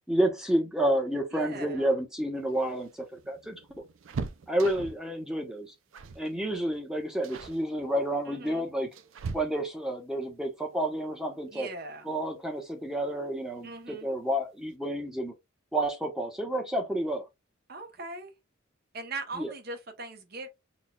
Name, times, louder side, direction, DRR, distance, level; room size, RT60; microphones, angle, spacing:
voice 1, 0.1-3.6 4.5-5.7 6.2-8.9 9.3-11.7 12.0-15.3 15.7-17.2 19.3-19.5, right 1 dB, 5° right, 0.9 m, -30 dB
voice 2, 1.3-1.9 8.3-8.7 11.5-12.1 13.6-14.1 17.7-18.3 18.9-20.5, right 2 dB, 50° right, 0.9 m, -40 dB
sound 1, 2.4-5.1 5.9-6.3 6.6-6.8 7.2-7.6 8.4-9.9 11.7-11.8 12.1-12.2 13.4-13.8 14.2-14.3 14.6-14.8, right 4 dB, 70° right, 0.5 m, -40 dB
6.1 x 2.3 x 2.3 m
head